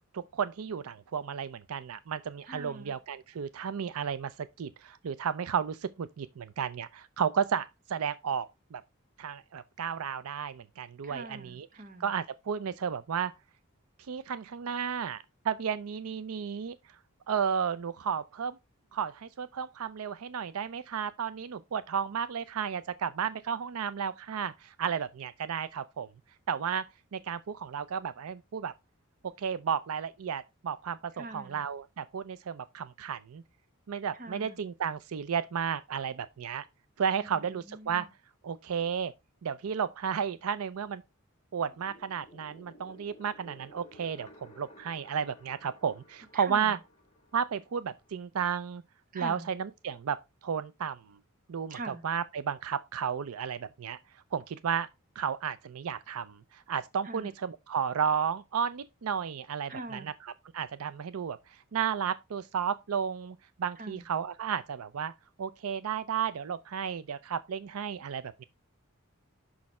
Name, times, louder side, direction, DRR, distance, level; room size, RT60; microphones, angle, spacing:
voice 1, 0.1-8.8 9.2-11.7 12.0-13.3 14.1-16.8 17.3-18.6 18.9-26.1 26.5-26.9 27.1-28.7 29.4-33.4 33.9-36.7 37.0-38.1 38.4-39.1 39.4-41.0 41.5-46.8 47.3-48.8 49.1-51.2 51.5-54.0 54.3-54.9 55.2-65.1 65.4-68.4, right 7 dB, 80° right, 0.5 m, -33 dB
voice 2, 2.5-3.0 11.0-12.1 31.2-31.6 34.2-34.6 37.2-37.4 37.7-38.1 46.3-46.7 49.1-49.5 51.7-52.0 57.0-57.3 59.7-60.1 63.8-64.0, right 2 dB, 40° right, 1.0 m, -43 dB
sound 1, 41.6-48.1, equal, 30° left, 1.7 m, -56 dB
6.4 x 5.7 x 4.2 m
head